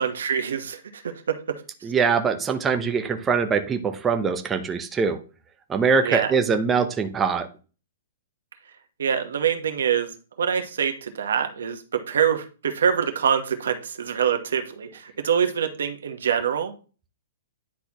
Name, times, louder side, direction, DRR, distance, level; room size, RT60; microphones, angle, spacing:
voice 1, 0.0-1.6 6.0-6.3 9.0-10.1 10.4-16.7, right 7 dB, 85° right, 6 dB, 1.1 m, -25 dB
voice 2, 1.8-5.2 5.7-7.5, right 5 dB, 10° right, 6 dB, 0.5 m, -23 dB
9.9 x 4.2 x 2.9 m, 0.35 s
hypercardioid pair, 160°, 0 cm